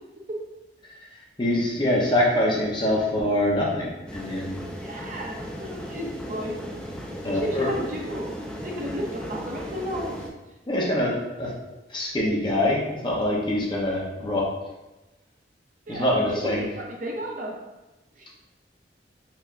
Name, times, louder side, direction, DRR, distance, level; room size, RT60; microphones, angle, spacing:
voice 1, 1.4-4.6 7.2-7.7 10.7-11.5 11.9-14.4 15.9-16.6, left 1 dB, 25° left, -3 dB, 0.8 m, -24 dB
sound 1, 4.1-10.3, equal, 5° left, 0.4 m, -36 dB
voice 2, 4.8-6.6 7.2-8.3 8.6-10.1 15.9-17.5 18.2-18.4, equal, 50° right, -1 dB, 0.7 m, -33 dB
4.4 x 3.4 x 2.5 m, 1.0 s
head